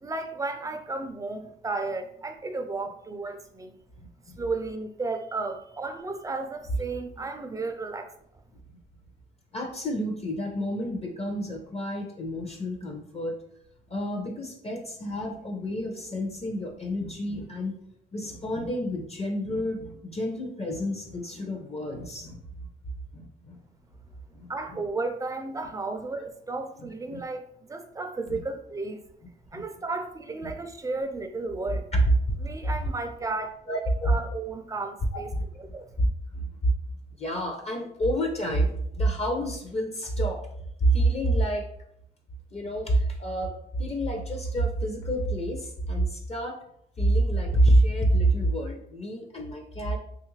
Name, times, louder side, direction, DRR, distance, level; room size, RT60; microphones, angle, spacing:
voice 1, 0.0-3.8 4.4-8.1 24.5-29.0 29.5-31.9 32.4-35.3 35.6-35.9, right 3 dB, 15° right, 0.4 m, -33 dB
voice 2, 9.5-13.4 13.9-17.7 18.1-22.7 23.1-23.6 24.3-24.8 26.8-27.2 28.3-28.4 29.5-29.6 31.9-32.0 33.7-34.1 35.1-35.4 36.0-36.1 36.3-36.6 37.2-40.4 40.8-41.7 42.5-43.5 43.8-46.6 47.0-50.0, right 1 dB, 30° left, 0.6 m, -28 dB
3.0 x 2.4 x 3.1 m
cardioid pair, 90°, 20 cm